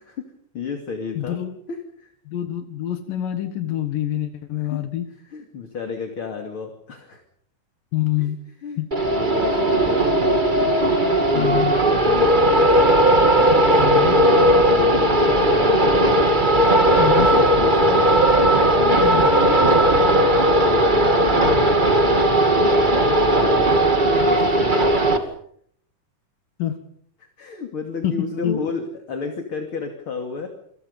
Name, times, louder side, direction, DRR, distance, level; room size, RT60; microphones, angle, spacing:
voice 1, 0.0-1.4 1.7-2.1 4.7-4.8 5.3-7.2 8.2-8.3 8.6-8.8 9.1-11.6 12.1-12.9 13.4-16.9 17.2-18.1 18.6-20.3 20.7-21.7 22.0-25.3 27.2-30.5, left 5 dB, 40° left, 4 dB, 3.2 m, -32 dB
voice 2, 1.2-1.5 2.3-5.1 7.9-8.4 8.8-8.9 10.1-10.2 11.3-11.7 13.8-14.2 17.0-17.3 19.0-19.3 21.3-21.6 26.6-26.7 28.0-28.7, left 12 dB, 90° left, 7 dB, 3.3 m, -26 dB
sound 1, 8.9-25.2, right 1 dB, 20° right, 1.8 m, -17 dB
28.5 x 25.5 x 5.5 m, 0.66 s
omnidirectional pair, 3.8 m